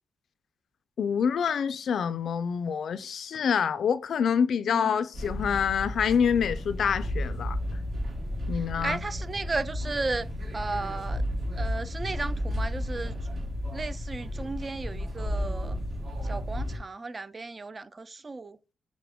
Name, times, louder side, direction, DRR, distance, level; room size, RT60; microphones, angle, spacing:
voice 1, 1.0-7.6 8.5-9.0, left 7 dB, 70° left, 0.3 m, -26 dB
sound 1, 5.1-16.8, equal, 50° right, 1.2 m, -33 dB
voice 2, 8.8-10.3 10.5-11.2 11.6-13.1 13.7-15.8 16.3-18.6, right 3 dB, 30° right, 0.3 m, -34 dB
5.7 x 2.0 x 3.5 m
cardioid pair, 95°, 0 cm